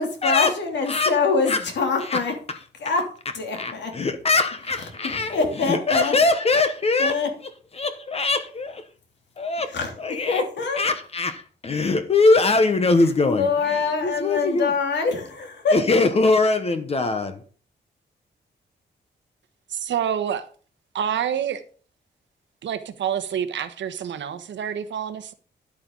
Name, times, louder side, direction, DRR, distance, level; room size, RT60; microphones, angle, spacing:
voice 1, 0.0-2.3 2.8-3.1 3.3-3.9 5.0-6.2 7.0-7.3 9.7-10.8 13.0-15.8, left 4 dB, 75° left, 3.0 m, -24 dB
voice 2, 3.6-7.2 7.7-8.8 9.4-9.7 10.0-10.4 10.8-14.7 15.7-17.4, left 3 dB, 35° left, 1.1 m, -22 dB
voice 3, 19.7-20.4 20.9-21.6 22.6-25.3, right 9 dB, 90° right, 1.3 m, -27 dB
11.0 x 8.7 x 3.9 m
wide cardioid pair, 175°, 18 cm